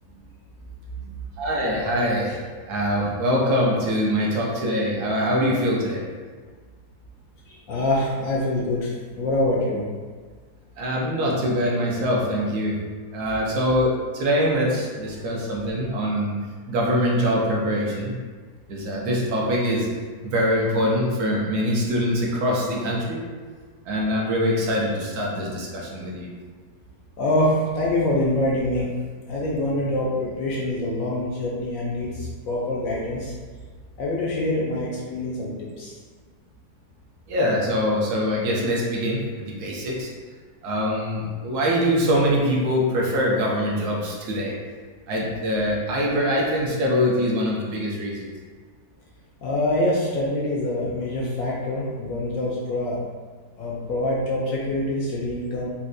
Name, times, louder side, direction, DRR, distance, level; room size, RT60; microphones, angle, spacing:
voice 1, 1.4-2.4 2.7-6.0 10.8-12.8 13.1-16.3 16.7-18.2 18.7-19.9 20.2-23.2 23.9-26.3 37.3-40.1 40.6-44.5 45.1-48.3, equal, 70° right, -3 dB, 1.1 m, -23 dB
voice 2, 7.5-9.8 27.2-28.9 29.3-33.3 34.0-35.9 49.4-53.0 53.6-55.7, left 1 dB, 75° left, -4 dB, 0.7 m, -25 dB
4.2 x 2.2 x 2.5 m, 1.5 s
omnidirectional pair, 1.9 m